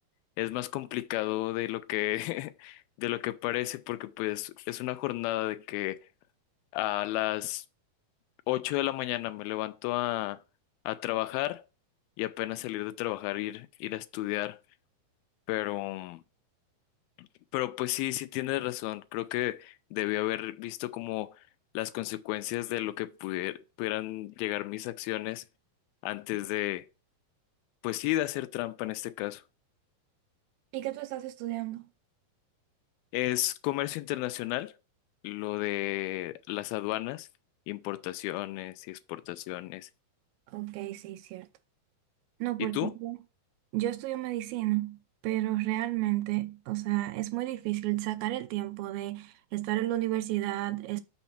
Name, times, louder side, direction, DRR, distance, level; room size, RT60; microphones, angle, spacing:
voice 1, 0.4-6.1 6.7-7.7 8.5-10.4 10.9-11.7 12.2-14.6 15.5-16.2 17.2-17.3 17.5-21.5 21.7-25.5 26.0-26.9 27.8-29.4 33.1-34.8 35.2-37.3 37.7-39.9 42.6-42.9, left 17 dB, 85° left, 2.3 m, -32 dB
voice 2, 30.7-31.8 40.5-41.5 42.4-43.2 43.7-45.0 45.2-51.0, right 16 dB, 80° right, 2.3 m, -32 dB
6.3 x 4.1 x 5.8 m
omnidirectional pair, 4.3 m